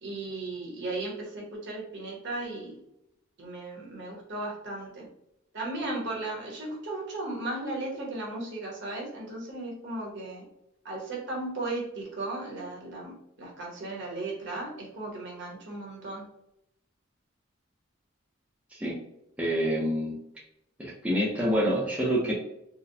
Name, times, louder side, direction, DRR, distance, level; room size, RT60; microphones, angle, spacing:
voice 1, 0.0-2.8 3.4-5.1 5.5-10.4 10.8-16.2, right 2 dB, 60° right, -2 dB, 1.1 m, -36 dB
voice 2, 19.4-20.2 20.8-22.3, equal, 5° right, -5 dB, 0.6 m, -27 dB
3.9 x 2.3 x 2.7 m, 0.80 s
head